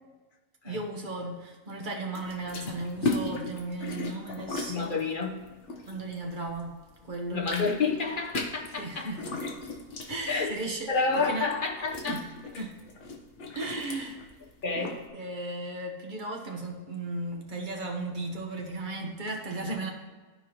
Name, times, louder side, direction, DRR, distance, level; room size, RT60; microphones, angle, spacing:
voice 1, 0.6-5.0 5.9-6.8 7.0-7.5 8.8-9.2 10.1-10.9 11.2-11.5 12.1-12.2 12.6-12.8 13.5-14.2 14.8-19.9, right 2 dB, 40° right, 1 dB, 1.2 m, -35 dB
sound 1, 2.1-6.7 7.0-15.0, left 3 dB, 60° left, 1.3 m, -36 dB
voice 2, 4.7-5.5 7.3-9.1 10.3-10.6 10.9-12.2 13.7-14.0 14.6-14.9, left 4 dB, 45° left, -1 dB, 1.0 m, -29 dB
13.5 x 4.7 x 2.9 m, 1.3 s
omnidirectional pair, 1.4 m